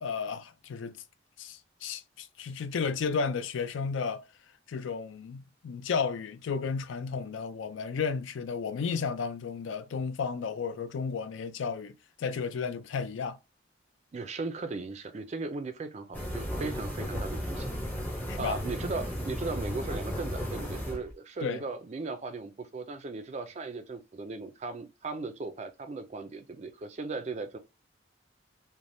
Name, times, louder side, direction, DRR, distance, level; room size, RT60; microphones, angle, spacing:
voice 1, 0.0-1.0 1.4-4.3 4.7-11.9 12.2-13.4 18.3-18.6 21.4-21.6, left 5 dB, 75° left, 0.3 m, -33 dB
voice 2, 14.1-17.7 18.4-27.6, right 3 dB, 35° right, 0.3 m, -37 dB
sound 1, 16.1-21.1, equal, 10° left, 0.6 m, -35 dB
3.3 x 2.1 x 2.6 m
head